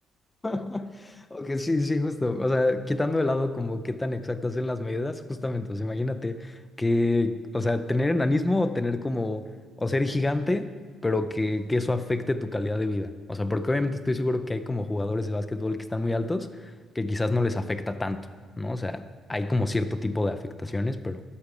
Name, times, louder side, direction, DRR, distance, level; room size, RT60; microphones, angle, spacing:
voice 1, 0.4-9.5 9.8-10.7 11.0-18.3 18.6-21.2, left 2 dB, 15° left, 10 dB, 0.5 m, -27 dB
11.5 x 8.4 x 4.9 m, 1.5 s
cardioid pair, 90°, 0 cm